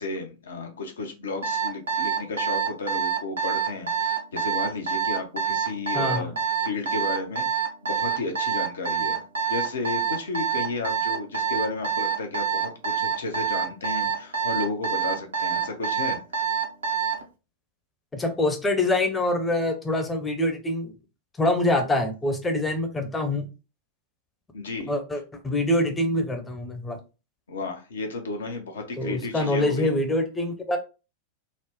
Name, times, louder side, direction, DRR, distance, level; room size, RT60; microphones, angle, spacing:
voice 1, 0.0-6.3 6.6-9.2 9.5-16.2 24.5-24.9 27.5-29.9, left 3 dB, 65° left, 5 dB, 0.7 m, -33 dB
Alarm, 1.4-17.2, right 7 dB, 70° right, 0.7 m, -26 dB
voice 2, 5.9-6.3 18.1-20.9 21.4-23.5 24.9-27.0 29.0-30.8, left 1 dB, 15° left, 6 dB, 0.7 m, -25 dB
4.0 x 2.0 x 3.1 m, 0.31 s
figure-of-eight pair, 90°, 0 cm